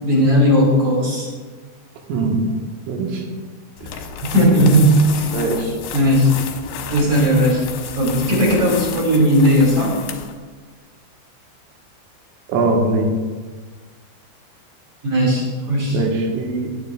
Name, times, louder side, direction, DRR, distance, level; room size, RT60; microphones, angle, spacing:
voice 1, 0.0-1.3 4.3-5.3 5.9-6.3 6.9-7.6 8.0-10.0 15.0-16.0, equal, 40° right, -3 dB, 3.6 m, -16 dB
voice 2, 2.1-2.4 2.9-3.2 3.8-3.9 5.3-5.8 12.5-13.1 15.9-16.7, right 3 dB, 85° right, 0 dB, 4.0 m, -21 dB
sound 1, 3.8-10.4, left 7 dB, 75° left, 2.5 m, -32 dB
21.5 x 9.2 x 2.4 m, 1.4 s
omnidirectional pair, 5.7 m